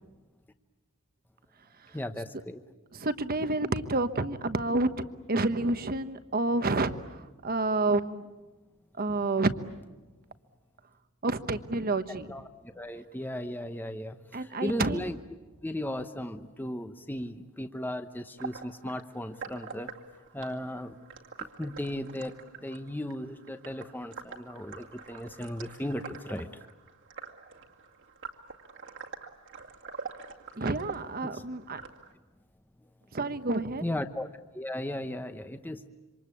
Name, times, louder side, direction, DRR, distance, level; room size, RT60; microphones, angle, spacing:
voice 1, 1.9-2.6 12.3-12.4 12.7-15.2 15.6-19.9 20.3-21.0 21.6-26.5 31.2-31.4 33.8-34.3 34.5-35.8, left 1 dB, 10° left, 8 dB, 0.9 m, -36 dB
voice 2, 2.9-4.9 5.3-8.2 9.0-9.5 11.2-12.3 14.3-15.0 30.6-31.8 33.1-33.8, right 2 dB, 45° right, 11 dB, 1.1 m, -29 dB
sound 1, 18.4-32.1, right 5 dB, 60° right, 2.3 m, -45 dB
27.5 x 25.5 x 8.5 m, 1.2 s
head